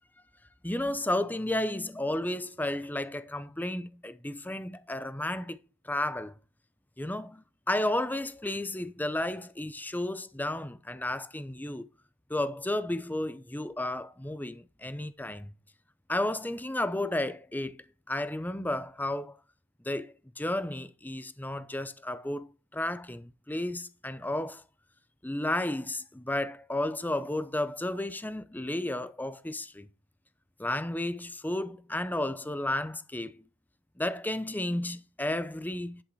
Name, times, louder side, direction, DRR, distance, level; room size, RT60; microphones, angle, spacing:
voice 1, 0.6-5.6 5.8-6.3 7.0-11.9 12.3-15.5 16.1-19.4 19.8-24.6 25.2-29.9 30.6-33.4 34.0-36.0, left 1 dB, 10° left, 0.7 m, -32 dB
11.5 x 6.4 x 4.7 m
head